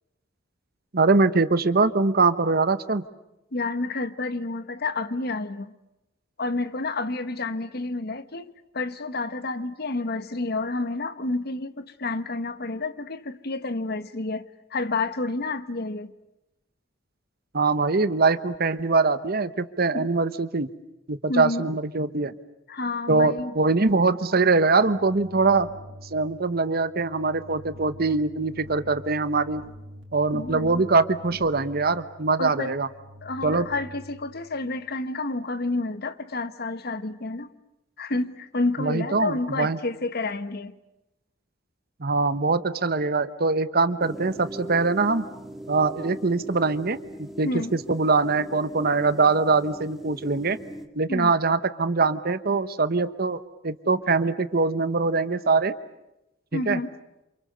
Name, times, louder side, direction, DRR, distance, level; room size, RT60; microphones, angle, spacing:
voice 1, 0.9-3.0 17.5-20.7 21.1-22.3 23.1-25.7 26.1-29.6 30.1-32.9 33.4-33.7 38.8-39.8 42.0-45.3 45.7-50.6 51.0-55.7 56.5-56.8, right 3 dB, 55° right, 1.1 m, -23 dB
voice 2, 3.5-5.8 6.4-16.1 19.9-20.1 21.3-21.7 22.7-23.5 30.3-30.8 32.4-32.7 33.2-37.5 38.0-40.8 47.4-47.7 51.1-51.3 56.5-57.0, left 2 dB, 55° left, 1.3 m, -30 dB
sound 1, 24.3-34.9, equal, 70° right, 3.5 m, -46 dB
sound 2, 44.0-50.9, right 1 dB, ahead, 2.0 m, -40 dB
28.0 x 28.0 x 6.8 m
head